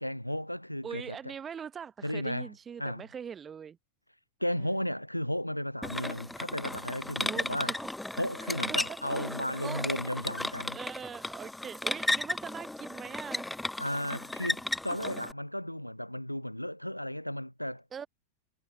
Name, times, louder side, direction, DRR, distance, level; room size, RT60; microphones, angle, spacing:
voice 1, 0.0-1.2 2.0-2.5 2.8-3.0 4.4-7.8 8.2-10.8 13.8-17.8, equal, 90° left, 0.4 m, -34 dB
voice 2, 0.8-3.8 4.5-4.9 7.2-7.7 8.7-9.4 9.6-9.8 10.7-13.5 17.9-18.1, right 7 dB, 20° right, 0.8 m, -42 dB
sound 1, 5.8-15.3, left 1 dB, 5° left, 0.4 m, -35 dB
figure-of-eight pair, 90°, 0 cm